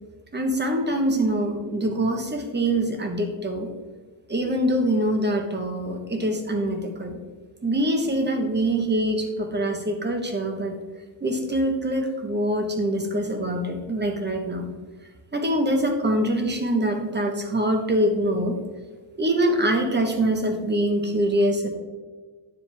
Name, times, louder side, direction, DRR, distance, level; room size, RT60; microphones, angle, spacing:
voice 1, 0.3-3.7 4.3-7.2 7.6-10.7 11.2-14.7 15.3-18.6 19.2-21.8, right 1 dB, 25° right, 4 dB, 1.2 m, -24 dB
9.4 x 7.3 x 3.5 m, 1.4 s
wide cardioid pair, 130°, 46 cm